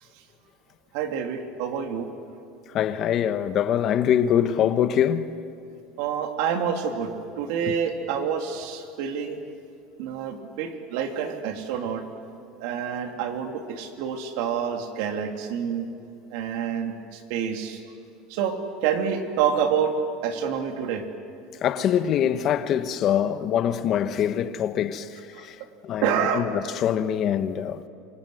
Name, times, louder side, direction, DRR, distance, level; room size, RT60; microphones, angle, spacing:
voice 1, 0.9-2.1 6.0-9.4 10.0-12.0 12.6-15.8 16.3-17.8 18.3-18.6 18.8-19.9 20.2-21.0 22.2-22.3 25.4-25.5 26.0-26.4, right 8 dB, 70° right, 2.9 m, -27 dB
voice 2, 2.7-5.3 21.6-25.1 25.4-25.5 25.8-27.8, left 9 dB, 40° left, 1.2 m, -24 dB
27.5 x 25.5 x 7.9 m
cardioid pair, 150°, 0 cm